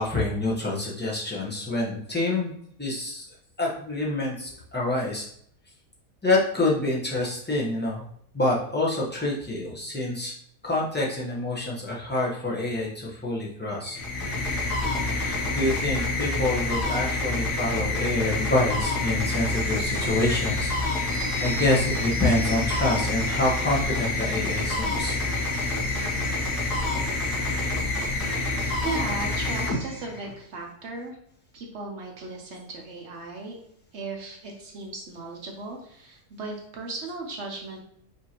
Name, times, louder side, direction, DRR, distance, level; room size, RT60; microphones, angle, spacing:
voice 1, 0.0-2.5 2.8-3.3 3.6-5.2 6.2-8.0 8.3-10.3 10.6-14.0 14.9-20.7 21.4-25.1, left 2 dB, 15° left, -5 dB, 0.4 m, -27 dB
sound 1, 13.8-30.4, left 2 dB, 80° left, 1.3 m, -27 dB
sound 2, 19.2-30.1, right 4 dB, 80° right, 1.3 m, -43 dB
voice 2, 28.3-31.2 31.5-33.6 33.9-37.8, right 3 dB, 55° right, 0 dB, 0.8 m, -37 dB
5.3 x 2.8 x 2.8 m, 0.67 s
omnidirectional pair, 1.7 m